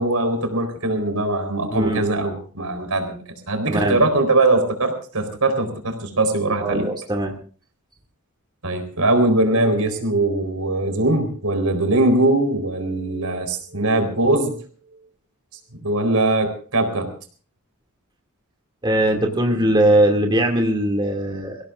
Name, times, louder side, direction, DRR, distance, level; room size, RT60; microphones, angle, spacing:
voice 1, 0.0-6.9 8.6-14.6 15.8-17.1, right 2 dB, 75° right, 6 dB, 4.2 m, -21 dB
voice 2, 3.7-4.0 6.6-7.3 18.8-21.6, right 1 dB, 20° right, 2 dB, 2.4 m, -20 dB
26.0 x 17.0 x 2.6 m, 0.41 s
head